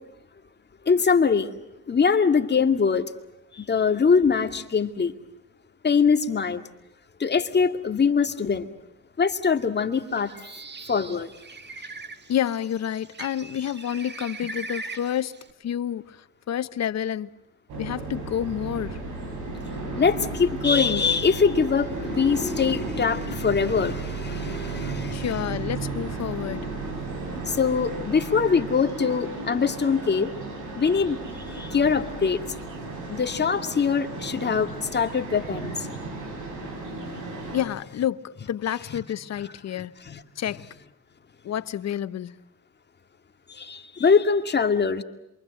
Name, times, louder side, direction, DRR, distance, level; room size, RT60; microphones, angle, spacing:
voice 1, 0.9-1.5 1.9-3.1 3.5-5.1 5.8-6.6 7.2-8.7 9.2-10.3 10.9-11.3 20.0-25.2 27.5-30.3 30.8-31.2 31.5-32.4 33.1-35.9 40.0-40.2 43.5-45.0, left 5 dB, 35° left, 2.2 m, -23 dB
Bird, 10.0-15.5, right 3 dB, 35° right, 1.9 m, -40 dB
voice 2, 12.3-17.3 17.8-19.0 25.1-26.7 37.5-40.0 40.4-40.7 41.4-42.4, left 10 dB, 60° left, 1.1 m, -29 dB
sound 1, 17.7-37.6, right 2 dB, 80° right, 7.5 m, -34 dB
28.0 x 23.5 x 7.8 m
cardioid pair, 90°, 30 cm